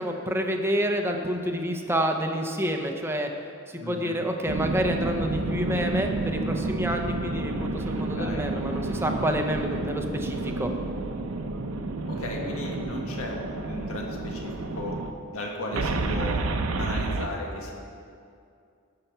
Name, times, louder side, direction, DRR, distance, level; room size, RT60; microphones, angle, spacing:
voice 1, 0.0-3.3 3.7-10.7, equal, 10° right, 3 dB, 0.8 m, -28 dB
voice 2, 3.8-4.2 8.2-8.5 12.1-15.0 15.3-16.4 16.8-17.8, left 1 dB, 70° left, -1 dB, 1.7 m, -35 dB
sound 1, 4.5-15.1 15.7-17.3, right 2 dB, 70° right, 0.7 m, -30 dB
13.5 x 5.8 x 6.8 m, 2.4 s
head